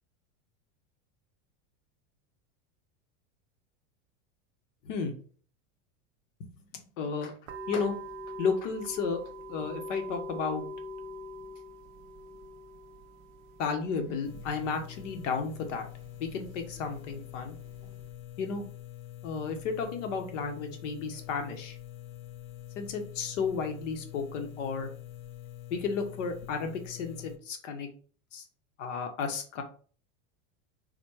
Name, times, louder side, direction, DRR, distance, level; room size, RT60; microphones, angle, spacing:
voice 1, 6.4-7.3 7.7-8.0 8.4-9.2 9.5-10.6 13.6-15.9 16.2-17.6 18.4-18.6 19.2-21.8 22.7-24.9 25.7-27.9 28.3-28.4 28.8-29.6, left 5 dB, 85° left, 5 dB, 1.1 m, -33 dB
sound 1, 7.5-18.1, equal, 35° right, 0.4 m, -44 dB
sound 2, 14.2-27.4, left 14 dB, 45° left, 0.6 m, -45 dB
4.1 x 2.2 x 4.6 m, 0.42 s
supercardioid pair, 165°, 36 cm